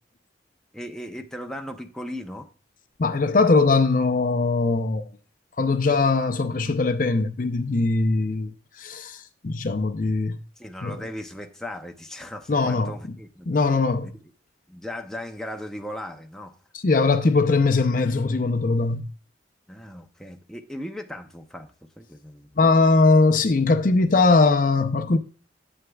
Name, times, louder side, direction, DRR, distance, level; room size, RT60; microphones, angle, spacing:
voice 1, 0.7-2.5 10.6-13.5 14.0-14.2 14.7-16.6 19.7-21.7 22.0-22.5, left 1 dB, 5° left, 0.7 m, -37 dB
voice 2, 3.0-5.0 5.6-8.5 8.8-10.4 10.8-11.0 12.5-12.9 13.5-14.1 16.7-19.1 22.6-25.2, left 3 dB, 45° left, 0.6 m, -20 dB
11.0 x 7.9 x 2.3 m
head